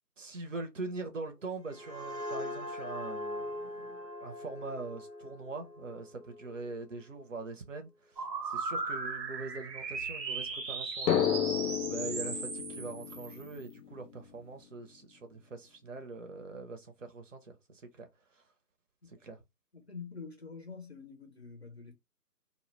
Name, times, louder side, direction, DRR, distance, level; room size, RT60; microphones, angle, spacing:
voice 1, 0.2-18.1 18.3-18.4 19.1-19.4, right 3 dB, 50° right, 0.6 m, -43 dB
sound 1, 1.4-6.9, left 1 dB, ahead, 0.7 m, -41 dB
sound 2, 8.2-13.7, right 4 dB, 85° right, 0.8 m, -37 dB
Drum, 11.1-14.4, left 9 dB, 90° left, 0.5 m, -32 dB
voice 2, 19.7-21.9, left 5 dB, 45° left, 0.5 m, -46 dB
2.1 x 2.0 x 3.0 m
figure-of-eight pair, 155°, 49 cm